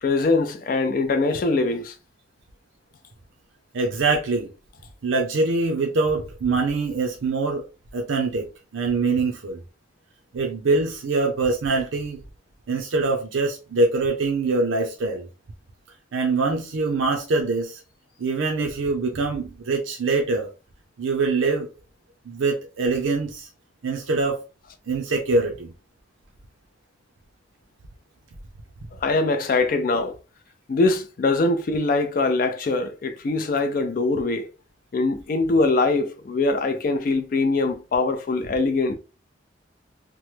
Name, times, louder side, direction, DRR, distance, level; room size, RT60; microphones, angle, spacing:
voice 1, 0.0-2.0 28.9-30.2 30.7-34.5 34.9-39.0, left 3 dB, 45° left, 0.3 m, -22 dB
voice 2, 3.7-4.5 5.0-7.6 7.9-8.5 8.7-9.6 10.3-12.2 12.7-15.3 16.1-17.8 18.2-20.5 21.0-21.7 22.3-23.5 23.8-24.4 24.9-25.7, right 3 dB, 90° right, 0.5 m, -24 dB
3.0 x 2.1 x 3.1 m
head